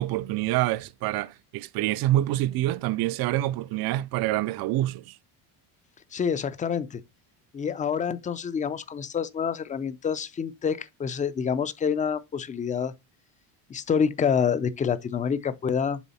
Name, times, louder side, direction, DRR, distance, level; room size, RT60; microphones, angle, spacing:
voice 1, 0.0-5.2, right 15 dB, 55° right, 0.5 m, -26 dB
voice 2, 6.1-7.0 7.5-12.9 13.7-16.0, left 7 dB, 20° left, 0.4 m, -27 dB
7.1 x 3.8 x 4.2 m
cardioid pair, 125°, 46 cm